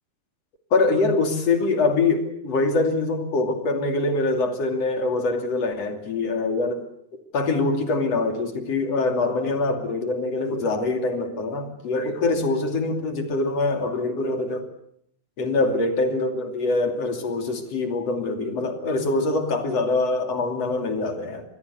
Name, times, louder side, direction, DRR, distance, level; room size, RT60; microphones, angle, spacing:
voice 1, 0.7-6.8 7.3-14.7 15.4-21.4, left 3 dB, 40° left, 5 dB, 3.0 m, -24 dB
26.5 x 21.5 x 8.3 m, 0.70 s
omnidirectional pair, 5.9 m